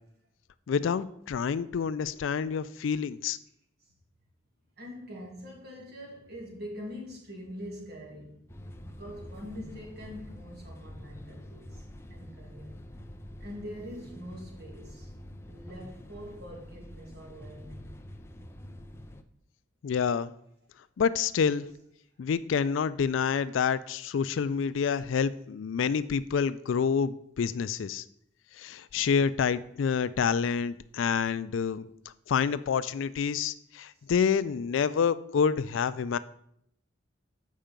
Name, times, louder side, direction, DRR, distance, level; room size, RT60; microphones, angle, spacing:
voice 1, 0.7-3.4 19.8-20.3 21.0-21.7 22.2-28.0 28.6-31.9 32.3-36.2, left 6 dB, 90° left, 13 dB, 0.4 m, -28 dB
voice 2, 4.8-12.8 13.4-15.1 15.5-18.0 34.0-34.1, equal, 55° right, -1 dB, 2.5 m, -44 dB
sound 1, 8.5-19.2, left 1 dB, 15° left, 0.5 m, -46 dB
7.4 x 5.6 x 5.1 m, 0.71 s
head